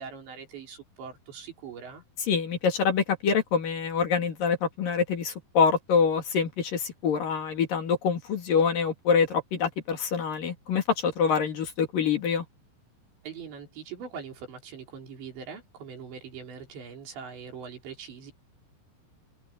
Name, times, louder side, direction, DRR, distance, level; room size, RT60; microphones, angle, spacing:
voice 1, 0.0-2.0 13.2-18.3, right 6 dB, 75° right, 6.6 m, -42 dB
voice 2, 2.3-12.5, left 6 dB, 55° left, 3.8 m, -25 dB
omnidirectional pair, 5.1 m